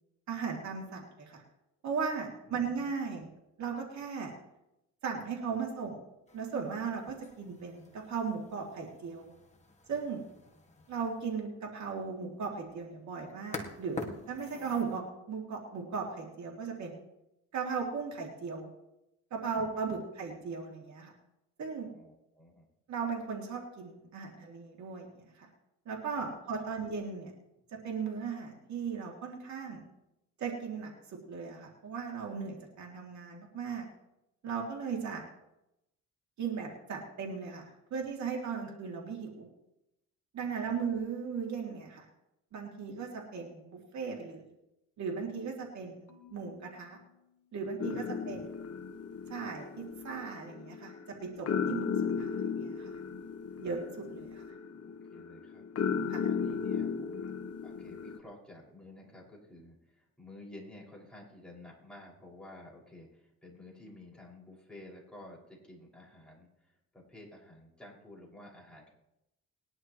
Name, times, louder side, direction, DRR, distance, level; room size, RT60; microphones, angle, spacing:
voice 1, 0.3-1.4 1.8-3.3 3.6-4.3 5.0-6.0 6.3-9.3 9.9-10.2 10.9-16.9 17.5-18.7 19.3-21.1 21.6-21.9 22.9-25.5 25.9-27.3 27.8-29.8 30.4-33.9 34.4-35.2 36.4-39.5 40.3-42.1 42.5-44.4 45.0-47.0 47.5-48.5 49.3-51.0 51.2-52.9 53.6-54.4 56.1-56.3, right 5 dB, 65° right, 0 dB, 2.7 m, -37 dB
voice 2, 2.4-2.7 3.2-3.3 19.4-19.5 19.9-20.0 21.9-22.7 40.4-40.8 47.9-48.5 54.5-55.6 56.3-57.4 57.6-68.9, left 1 dB, 5° left, -4 dB, 5.7 m, -52 dB
sound 1, 6.3-15.0, left 3 dB, 20° left, 1.9 m, -48 dB
Marimba xylophone / Wood, 46.1-48.3, left 8 dB, 80° left, 1.7 m, -63 dB
sound 2, 47.8-58.2, left 6 dB, 55° left, 1.2 m, -36 dB
21.0 x 11.0 x 3.1 m, 0.88 s
cardioid pair, 90°, 30 cm